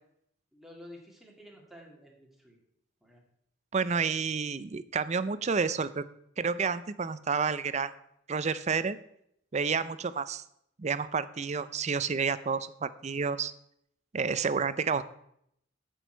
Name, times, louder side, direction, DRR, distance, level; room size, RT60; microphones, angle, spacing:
voice 1, 0.5-2.6 3.0-3.2 11.3-11.4, left 1 dB, ahead, -1 dB, 2.2 m, -51 dB
voice 2, 3.7-6.0 6.4-7.9 8.3-9.0 9.5-10.4 10.8-13.5 14.1-15.0, right 5 dB, 35° right, 15 dB, 0.5 m, -30 dB
14.5 x 6.2 x 4.5 m, 0.72 s
head